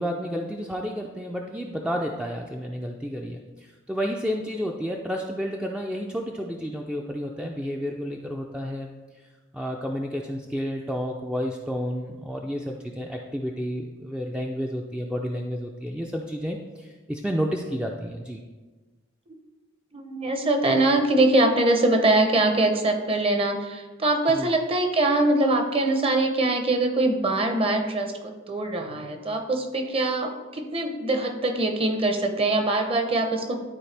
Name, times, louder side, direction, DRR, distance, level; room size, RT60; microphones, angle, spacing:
voice 1, 0.0-8.9 9.5-18.4 24.3-24.5, equal, 5° right, 1 dB, 0.4 m, -31 dB
voice 2, 19.9-33.6, right 2 dB, 30° right, 5 dB, 0.8 m, -23 dB
11.5 x 4.4 x 3.3 m, 1.3 s
head